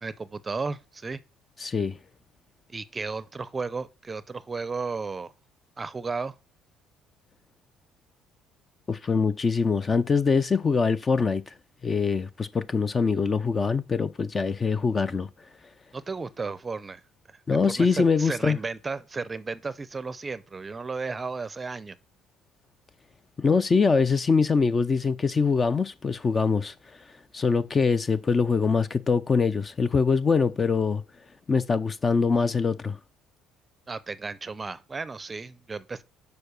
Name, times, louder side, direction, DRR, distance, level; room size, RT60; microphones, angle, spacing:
voice 1, 0.0-1.2 2.7-5.3 5.8-6.3 15.9-17.0 17.7-22.0 33.9-36.0, right 4 dB, 20° right, 0.6 m, -34 dB
voice 2, 1.6-2.0 8.9-11.4 11.8-15.3 17.5-18.6 23.4-26.7 27.3-31.0 31.5-33.0, left 5 dB, 25° left, 0.5 m, -23 dB
6.8 x 5.2 x 6.6 m
cardioid pair, 115°, 0 cm